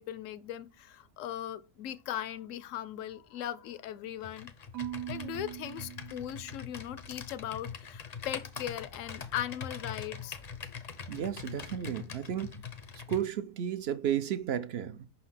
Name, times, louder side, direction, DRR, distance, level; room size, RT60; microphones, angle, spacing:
voice 1, 0.0-4.5 5.1-10.4, left 11 dB, 70° left, 0.9 m, -39 dB
Computer keyboard, 4.2-13.3, left 6 dB, 45° left, 0.5 m, -43 dB
Marimba xylophone / Wood, 4.7-6.9, right 13 dB, 75° right, 1.1 m, -42 dB
voice 2, 11.1-12.6 13.0-15.1, right 10 dB, 60° right, 0.7 m, -33 dB
5.7 x 4.2 x 5.7 m
omnidirectional pair, 1.5 m